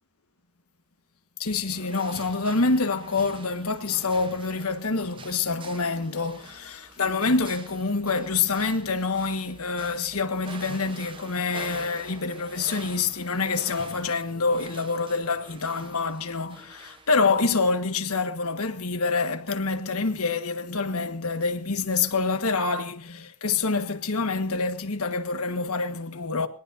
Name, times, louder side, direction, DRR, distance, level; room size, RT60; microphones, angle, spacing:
voice 1, 1.4-26.5, left 4 dB, 80° left, 1.5 m, -26 dB
sound 1, 1.4-17.5, right 4 dB, 25° right, 1.0 m, -47 dB
22.0 x 18.5 x 2.7 m
head